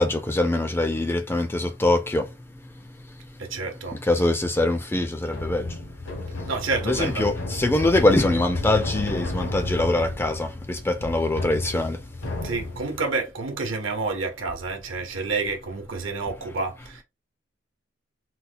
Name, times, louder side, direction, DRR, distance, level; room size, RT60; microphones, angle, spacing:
voice 1, 0.0-2.3 4.1-5.7 6.8-12.0, left 2 dB, 10° left, 0.4 m, -23 dB
voice 2, 3.4-4.0 6.5-7.3 12.4-17.0, right 3 dB, 75° right, 0.9 m, -29 dB
sound 1, 5.3-13.0, left 2 dB, 80° left, 0.9 m, -32 dB
4.2 x 2.2 x 2.5 m
head